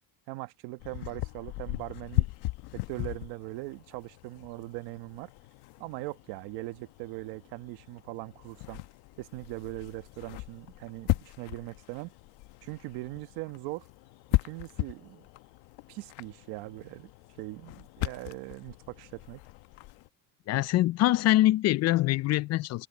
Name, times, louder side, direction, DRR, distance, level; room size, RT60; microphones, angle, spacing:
voice 1, 0.3-2.3 2.7-5.3 5.8-8.8 9.2-12.1 12.6-13.9 14.4-15.3 15.9-17.1 17.4-19.4, right 20 dB, 80° right, 1.3 m, -40 dB
sound 1, 0.8-20.1, left 19 dB, 80° left, 1.0 m, -37 dB
voice 2, 20.5-22.9, left 16 dB, 45° left, 0.4 m, -24 dB
cardioid pair, 150°, 38 cm